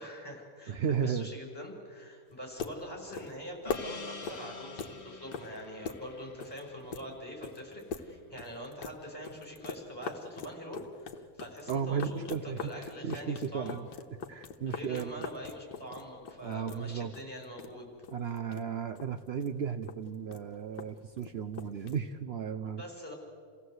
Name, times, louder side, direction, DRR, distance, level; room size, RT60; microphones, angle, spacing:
voice 1, 0.0-13.8 14.7-17.8 22.6-23.1, equal, 10° left, -1 dB, 5.8 m, -44 dB
voice 2, 0.7-1.3 11.7-13.9 14.3-15.3 16.4-17.1 18.1-22.8, right 7 dB, 75° right, 10 dB, 0.5 m, -34 dB
sound 1, 2.3-22.2, left 5 dB, 70° left, 1.7 m, -44 dB
Gong, 3.6-8.4, left 4 dB, 40° left, 2.5 m, -49 dB
29.0 x 16.5 x 7.9 m, 2.3 s
omnidirectional pair, 1.9 m